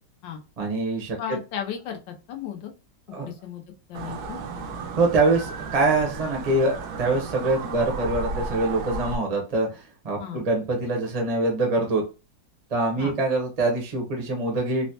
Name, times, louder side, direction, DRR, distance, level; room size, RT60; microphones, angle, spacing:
voice 1, 0.6-1.4 3.1-3.3 5.0-12.0 12.7-14.9, right 2 dB, 35° right, 0 dB, 0.6 m, -24 dB
voice 2, 1.2-2.7 3.2-3.6 3.9-4.4 10.2-10.4 13.0-13.1, left 9 dB, 85° left, 3 dB, 1.3 m, -34 dB
sound 1, 3.9-9.2, right 4 dB, 70° right, 1.0 m, -34 dB
4.0 x 2.1 x 2.7 m, 0.30 s
omnidirectional pair, 2.0 m